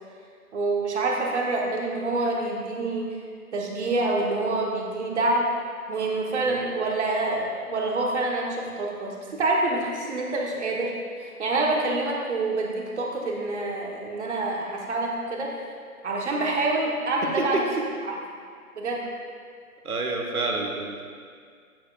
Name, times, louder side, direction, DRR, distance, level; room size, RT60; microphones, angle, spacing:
voice 1, 0.5-3.1 3.5-5.5 5.9-10.9 11.2-15.6 16.0-17.6 18.0-18.1 18.7-19.0, right 2 dB, 50° right, -2 dB, 1.5 m, -26 dB
voice 2, 17.2-17.8 19.8-21.0, right 3 dB, 80° right, 2 dB, 1.4 m, -28 dB
10.5 x 7.8 x 2.5 m, 2.1 s
hypercardioid pair, 155°, 44 cm